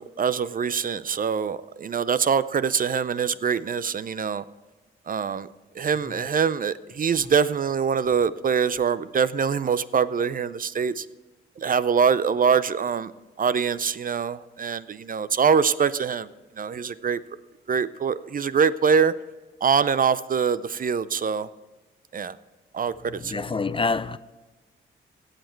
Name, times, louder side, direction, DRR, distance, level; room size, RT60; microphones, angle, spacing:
voice 1, 0.0-4.4 5.1-5.5 5.8-11.0 11.6-13.1 13.4-16.3 16.6-17.2 17.7-19.1 19.6-21.5 22.1-22.4 22.7-22.9 23.2-23.4, right 6 dB, 40° right, 0.5 m, -24 dB
voice 2, 23.2-24.2, left 4 dB, 25° left, 0.5 m, -26 dB
16.5 x 6.6 x 4.5 m
supercardioid pair, 55°, 21 cm